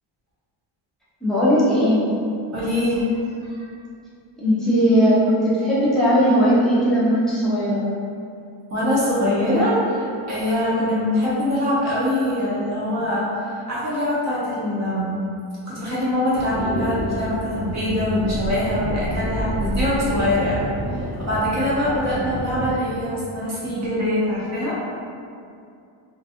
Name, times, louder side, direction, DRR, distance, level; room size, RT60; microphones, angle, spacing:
voice 1, 1.2-2.3 4.4-7.9, equal, ahead, -10 dB, 0.4 m, -18 dB
voice 2, 2.5-3.7 8.7-13.3 13.7-15.2 15.7-20.7 21.2-24.8, left 1 dB, 35° right, -9 dB, 0.7 m, -23 dB
sound 1, 16.3-22.7, right 1 dB, 70° right, 0.8 m, -28 dB
2.5 x 2.2 x 2.7 m, 2.5 s
cardioid pair, 155°, 49 cm